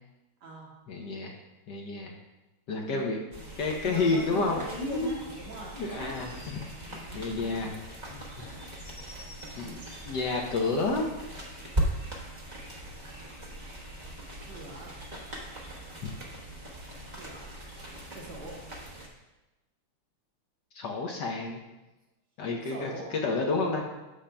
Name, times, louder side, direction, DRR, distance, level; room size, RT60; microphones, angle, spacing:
voice 1, 0.9-1.3 1.7-2.1 2.7-3.2 3.6-5.1 5.8-6.3 7.1-7.7 8.1-8.5 9.6-9.8 10.1-11.1 20.7-21.6 22.4-22.9 23.2-23.8, left 3 dB, 65° left, 1 dB, 1.2 m, -30 dB
voice 2, 2.8-3.2 3.8-6.2 6.8-7.7 14.5-14.9 17.1-17.5 18.1-18.6 22.6-23.1, right 1 dB, 80° right, -5 dB, 2.8 m, -41 dB
sound 1, 3.3-19.1, right 1 dB, 30° right, 0.8 m, -39 dB
10.0 x 7.1 x 2.2 m, 1.0 s
omnidirectional pair, 2.4 m